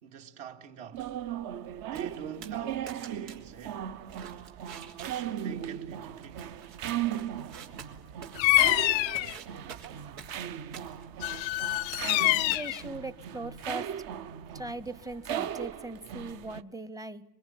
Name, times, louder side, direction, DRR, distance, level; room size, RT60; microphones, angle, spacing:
voice 1, 0.0-1.1 1.8-3.9 4.9-6.5, right 8 dB, 60° right, 2.7 m, -45 dB
sound 1, 0.9-16.6, right 10 dB, 45° right, 1.0 m, -38 dB
sound 2, 1.8-13.0, right 7 dB, 90° right, 3.4 m, -50 dB
Bird vocalization bird call bird song, 8.4-9.3 11.2-12.8, left 20 dB, 90° left, 0.9 m, -25 dB
voice 2, 12.0-13.9 14.5-17.2, right 2 dB, 5° right, 0.9 m, -39 dB
24.0 x 23.5 x 9.1 m
supercardioid pair, 110°, 50 cm